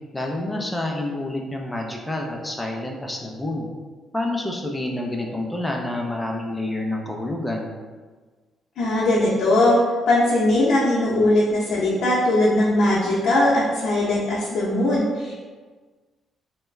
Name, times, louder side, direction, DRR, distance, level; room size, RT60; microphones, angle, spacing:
voice 1, 0.1-3.7 4.1-7.7, left 1 dB, 10° left, 0 dB, 0.5 m, -28 dB
voice 2, 8.8-9.8 10.1-15.4, left 1 dB, 70° left, -8 dB, 0.7 m, -20 dB
3.3 x 2.2 x 3.1 m, 1.4 s
cardioid pair, 90°, 0 cm